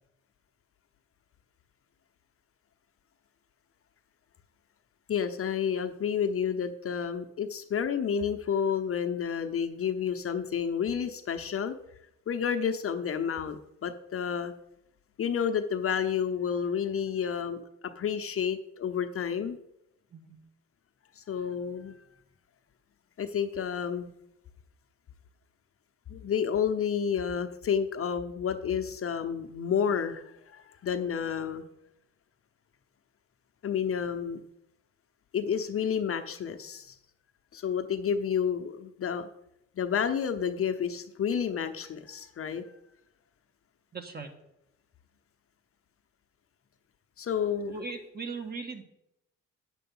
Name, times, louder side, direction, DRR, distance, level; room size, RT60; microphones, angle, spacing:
voice 1, 5.1-11.8 12.3-14.5 15.2-19.6 21.2-22.1 23.2-24.1 26.1-31.6 33.6-34.4 35.3-36.9 37.5-39.3 39.8-42.7 47.2-47.7, left 7 dB, 45° left, 8 dB, 0.8 m, -30 dB
voice 2, 43.9-44.3 47.7-48.8, right 4 dB, 30° right, 4 dB, 1.8 m, -38 dB
9.0 x 6.8 x 5.6 m, 0.81 s
cardioid pair, 90°, 30 cm